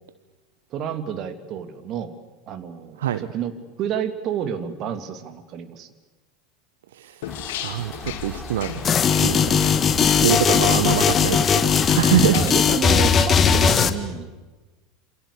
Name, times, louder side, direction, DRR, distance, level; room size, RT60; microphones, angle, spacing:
voice 1, 0.7-2.1 2.5-3.5 3.8-5.9 12.3-14.4, right 8 dB, 45° right, 10 dB, 2.7 m, -30 dB
voice 2, 6.9-7.3 7.6-12.4, right 11 dB, 75° right, 13 dB, 0.9 m, -25 dB
sound 1, 7.2-12.7, left 10 dB, 70° left, 2.7 m, -35 dB
sound 2, 7.3-12.3, left 1 dB, 5° left, 5.4 m, -37 dB
sound 3, 8.8-13.9, left 7 dB, 30° left, 1.9 m, -18 dB
28.0 x 27.5 x 6.9 m, 1.2 s
hypercardioid pair, 80°, 0 cm